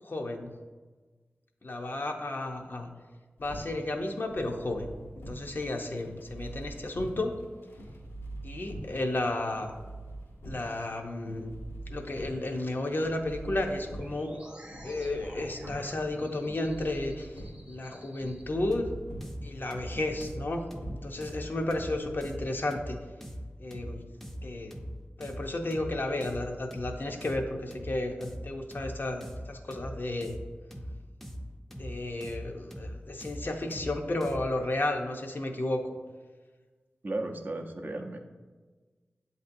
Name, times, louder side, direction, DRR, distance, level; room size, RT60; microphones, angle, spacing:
voice 1, 0.0-0.5 1.6-2.9 3.4-4.9 5.3-7.3 8.4-9.7 10.5-11.5 11.9-14.4 14.8-17.4 17.7-18.9 19.4-23.0 23.6-24.0 24.4-24.7 25.2-30.4 31.8-35.8, left 2 dB, 50° left, 3 dB, 0.6 m, -33 dB
sound 1, 3.4-22.4, right 1 dB, 85° left, 1.0 m, -45 dB
sound 2, 14.0-18.4, equal, 25° right, 0.8 m, -51 dB
sound 3, 18.7-34.6, equal, 5° left, 0.5 m, -42 dB
voice 2, 37.0-38.2, right 2 dB, 45° right, 4 dB, 0.5 m, -35 dB
7.5 x 2.7 x 2.6 m, 1.3 s
cardioid pair, 50°, 4 cm